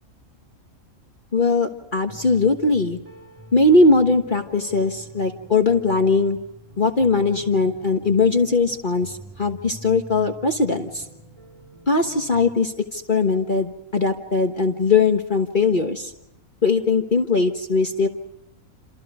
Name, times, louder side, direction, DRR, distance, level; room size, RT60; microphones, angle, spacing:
voice 1, 1.3-3.0 3.5-6.4 6.8-11.0 11.9-16.1 16.6-18.1, left 3 dB, 35° left, 5 dB, 1.5 m, -20 dB
sound 1, 2.1-12.6, equal, 25° right, 3.7 m, -45 dB
29.0 x 27.5 x 4.9 m, 0.82 s
omnidirectional pair, 1.5 m